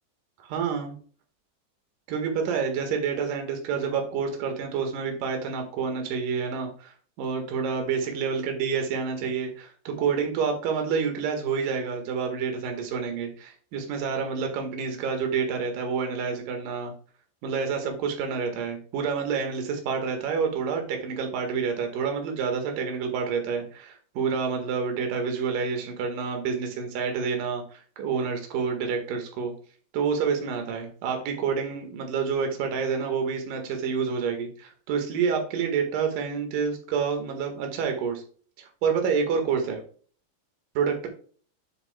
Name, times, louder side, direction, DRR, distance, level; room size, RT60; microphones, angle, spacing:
voice 1, 0.5-0.9 2.1-16.9 17.4-29.5 29.9-38.2 38.6-39.8 40.7-41.1, right 6 dB, 60° right, 4 dB, 2.7 m, -28 dB
9.4 x 7.5 x 2.3 m, 0.43 s
omnidirectional pair, 5.2 m